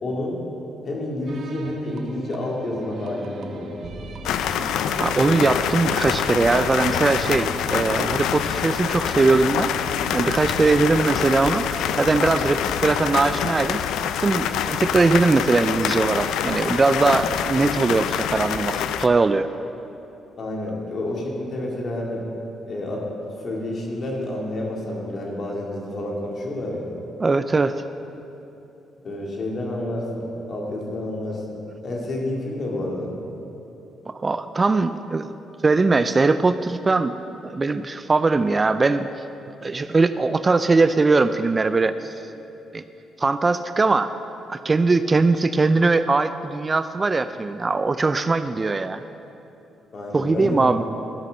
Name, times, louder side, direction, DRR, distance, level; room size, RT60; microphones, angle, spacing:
voice 1, 0.0-0.4 0.8-4.1 5.3-5.6 20.4-22.2 22.7-23.0 23.4-26.9 29.0-31.6 31.8-33.1 49.9-50.9, left 1 dB, 50° left, -2 dB, 2.3 m, -29 dB
sound 1, 1.3-12.7, right 3 dB, 60° right, 0.9 m, -39 dB
sound 2, 4.2-19.1, left 9 dB, 85° left, 0.4 m, -25 dB
voice 2, 5.0-9.7 10.1-13.8 14.2-19.5 27.2-27.8 34.1-35.3 35.6-39.1 39.6-42.1 42.7-42.8 43.2-44.1 44.5-49.0 50.1-50.8, right 3 dB, 30° right, 11 dB, 0.3 m, -20 dB
13.0 x 5.9 x 6.4 m, 2.9 s
cardioid pair, 90°, 0 cm